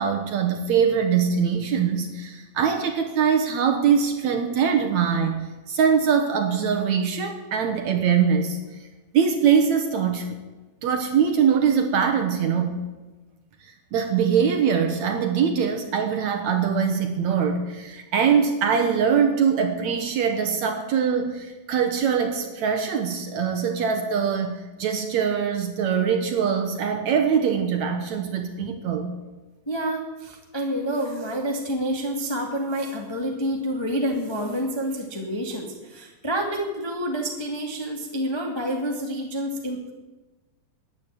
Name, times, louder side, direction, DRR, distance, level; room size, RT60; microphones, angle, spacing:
voice 1, 0.0-8.6 9.1-10.4 10.8-12.8 13.6-29.1, right 7 dB, 65° right, 6 dB, 2.0 m, -23 dB
voice 2, 29.7-39.9, equal, 20° left, 1 dB, 0.8 m, -28 dB
14.0 x 9.7 x 8.7 m, 1.2 s
omnidirectional pair, 4.2 m